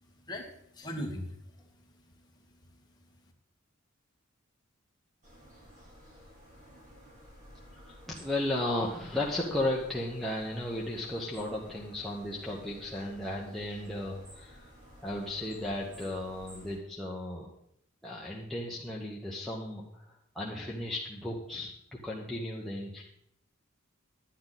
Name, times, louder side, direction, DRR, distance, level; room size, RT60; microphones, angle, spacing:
voice 1, 0.0-3.2, equal, 20° left, 1 dB, 1.6 m, -43 dB
sound 1, 5.2-16.8, equal, 35° right, 3.0 m, -53 dB
voice 2, 7.8-14.7 15.0-17.5 18.0-23.0, left 1 dB, ahead, -5 dB, 1.1 m, -35 dB
10.5 x 9.5 x 4.0 m, 0.72 s
head